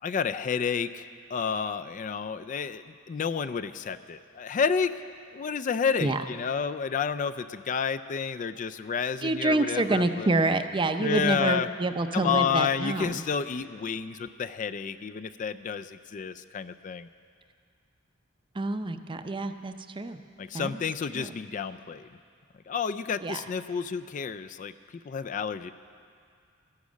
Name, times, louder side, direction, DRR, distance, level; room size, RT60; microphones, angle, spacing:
voice 1, 0.0-4.9 5.3-10.3 11.0-11.7 12.1-17.1 20.4-22.1 22.7-25.7, left 6 dB, 40° left, 11 dB, 0.3 m, -30 dB
voice 2, 9.2-13.2 18.5-20.2 20.5-20.8 21.1-21.3 23.2-23.4, right 2 dB, 25° right, 9 dB, 0.6 m, -27 dB
13.0 x 11.5 x 8.3 m, 2.3 s
head